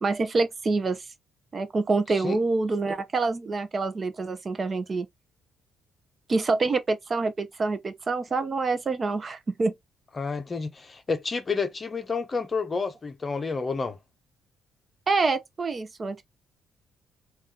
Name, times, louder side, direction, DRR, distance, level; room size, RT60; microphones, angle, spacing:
voice 1, 0.0-1.0 1.5-5.1 6.3-9.7 15.1-16.3, right 3 dB, 30° right, 0.6 m, -26 dB
voice 2, 10.1-14.0, left 4 dB, 25° left, 0.7 m, -30 dB
3.6 x 2.4 x 3.8 m
cardioid pair, 120°, 0 cm